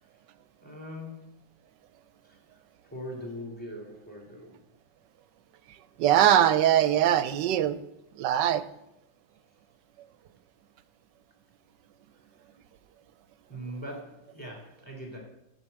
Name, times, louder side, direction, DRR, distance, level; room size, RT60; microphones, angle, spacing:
voice 1, 0.6-1.3 2.2-2.4 2.8-4.5 13.5-15.2, equal, 5° left, -1 dB, 3.4 m, -41 dB
voice 2, 6.0-7.8 8.2-8.6, right 11 dB, 80° right, 13 dB, 1.2 m, -22 dB
7.7 x 7.5 x 8.4 m, 0.86 s
omnidirectional pair, 2.0 m